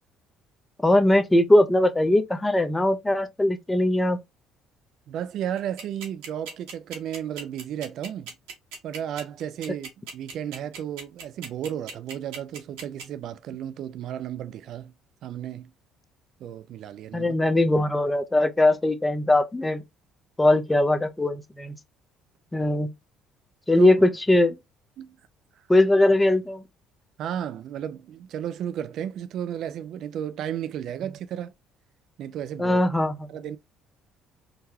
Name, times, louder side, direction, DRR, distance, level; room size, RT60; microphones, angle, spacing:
voice 1, 0.8-4.2 17.1-19.8 20.4-21.8 22.5-22.9 23.7-24.6 25.7-26.6 32.6-33.3, left 1 dB, 15° left, 0.6 m, -20 dB
voice 2, 5.1-8.3 8.8-14.9 15.2-15.7 16.4-17.3 23.8-24.0 25.0-25.2 27.2-31.5 32.2-32.8 33.3-33.6, right 10 dB, 65° right, 0.4 m, -33 dB
sound 1, 5.6-13.0, right 5 dB, 85° right, 1.2 m, -38 dB
3.8 x 2.1 x 2.8 m
supercardioid pair, 65°, 0 cm